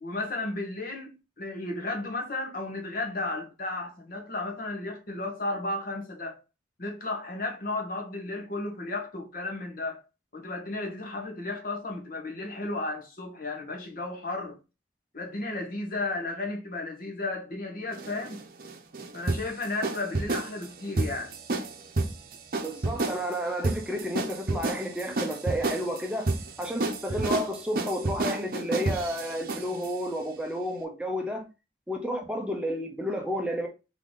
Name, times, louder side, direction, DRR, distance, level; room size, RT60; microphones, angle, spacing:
voice 1, 0.0-6.4 6.8-10.0 10.3-14.6 15.1-18.4 19.1-21.3, left 2 dB, 50° left, 1.1 m, -34 dB
sound 1, 17.9-29.9, right 2 dB, 50° right, 0.7 m, -30 dB
voice 2, 22.6-26.3 26.6-31.5 31.9-33.7, equal, 5° right, 0.6 m, -31 dB
3.7 x 3.7 x 3.8 m
head